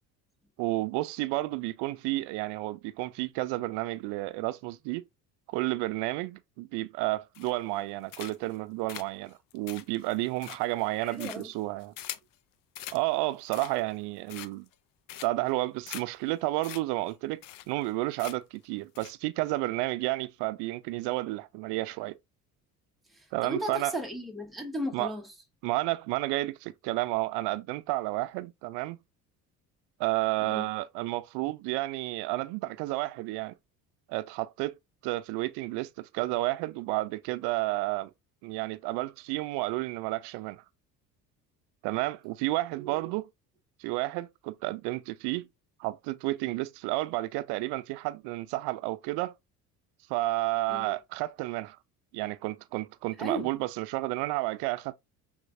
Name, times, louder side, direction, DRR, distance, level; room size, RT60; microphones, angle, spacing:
voice 1, 0.6-5.0 5.5-11.9 12.9-14.7 15.2-17.4 17.7-22.1 23.3-23.9 24.9-25.1 25.6-29.0 30.0-33.5 34.1-34.7 35.0-38.1 38.4-40.6 41.8-43.3 43.8-45.5 45.8-49.3 50.1-51.8 52.1-55.0, right 19 dB, 65° right, 0.5 m, -31 dB
sound 1, 7.3-7.8 8.1-8.6 8.9-12.3 12.7-13.0 13.4-13.9 14.3-14.7 15.1-15.5 15.9-16.0 16.3-16.4 16.6-16.8 17.1-17.2 17.4-17.9 18.2-18.6 18.9-19.1, left 12 dB, 50° left, 0.5 m, -43 dB
voice 2, 11.0-11.5 23.1-25.3 30.4-30.7 42.7-43.1 50.7-51.0 53.2-53.6, right 1 dB, ahead, 0.9 m, -36 dB
3.6 x 3.1 x 2.5 m
hypercardioid pair, 65°, 46 cm